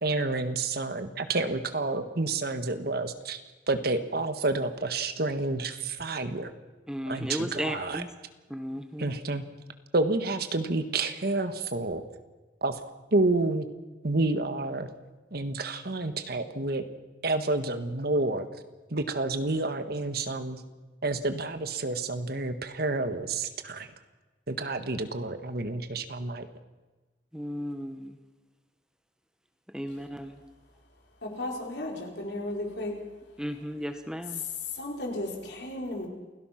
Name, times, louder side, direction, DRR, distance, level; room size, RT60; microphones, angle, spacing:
voice 1, 0.0-3.4 3.7-6.5 7.1-8.0 9.0-9.4 9.9-12.0 12.6-13.7 14.0-14.9 15.3-16.9 17.2-18.5 18.9-20.6 21.0-23.9 24.5-26.5, right 2 dB, 60° right, 9 dB, 1.6 m, -29 dB
voice 2, 6.9-8.1 8.5-9.1 27.3-28.1 29.7-30.4 33.4-34.4, equal, 5° right, 7 dB, 1.4 m, -35 dB
voice 3, 31.2-33.0 34.7-36.1, left 1 dB, 70° left, 1 dB, 4.6 m, -34 dB
28.5 x 17.0 x 6.0 m, 1.2 s
head